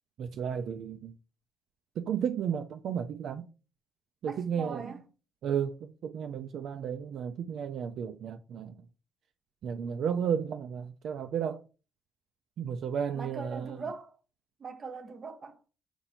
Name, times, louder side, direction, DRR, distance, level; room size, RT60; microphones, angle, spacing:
voice 1, 0.2-1.1 2.0-3.5 4.2-4.9 5.4-8.7 9.6-11.6 12.6-13.8, right 8 dB, 70° right, 0.3 m, -33 dB
voice 2, 4.2-5.0 13.1-14.2 14.6-15.6, right 4 dB, 40° right, 0.7 m, -41 dB
4.3 x 2.6 x 4.1 m
cardioid pair, 90°, 0 cm